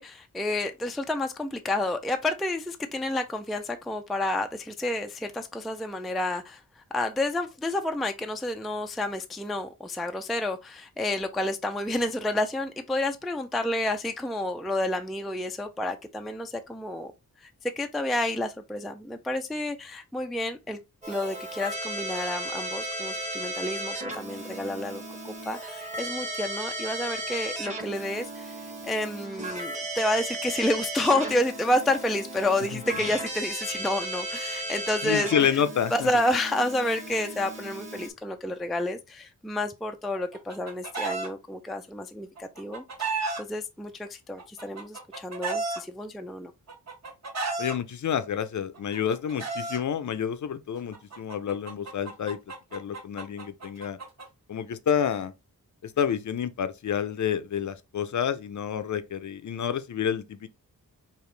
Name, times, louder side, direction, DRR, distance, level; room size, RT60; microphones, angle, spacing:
voice 1, 0.0-6.6 6.9-17.1 17.4-20.8 21.1-28.6 28.8-35.6 35.9-46.5, left 1 dB, ahead, 0.3 m, -30 dB
Keyboard (musical), 21.0-38.1, right 1 dB, 20° right, 1.2 m, -35 dB
voice 2, 32.7-33.1 35.0-36.1 47.6-52.4 52.7-54.0 54.5-55.3 55.8-60.5, left 8 dB, 55° left, 0.5 m, -29 dB
Chicken rooster, 40.1-41.3 42.4-43.4 44.4-45.8 46.7-47.7 48.7-49.8 50.9-54.2, right 3 dB, 50° right, 1.4 m, -33 dB
4.8 x 2.9 x 3.2 m
wide cardioid pair, 135°, 35 cm